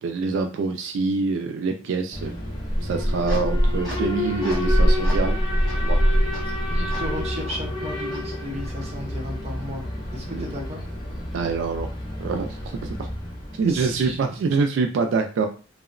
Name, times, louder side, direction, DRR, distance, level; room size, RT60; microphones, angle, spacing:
voice 1, 0.0-2.4 2.8-5.4 5.7-6.0 10.3-10.5 11.3-11.9 12.2-13.1 13.5-15.5, right 4 dB, 80° right, 5 dB, 0.3 m, -25 dB
Alarm, 2.1-14.1, equal, 25° left, 0.5 m, -25 dB
sound 1, 2.9-4.8 5.0-5.3 5.7-5.8 6.3-6.4 6.9-7.0 7.5-7.6 8.1-8.2 8.8-8.9, left 1 dB, ahead, 1.5 m, -39 dB
voice 2, 6.7-9.9 10.1-10.8 13.7-14.2, equal, 35° right, -2 dB, 0.7 m, -34 dB
2.7 x 2.0 x 2.4 m, 0.36 s
head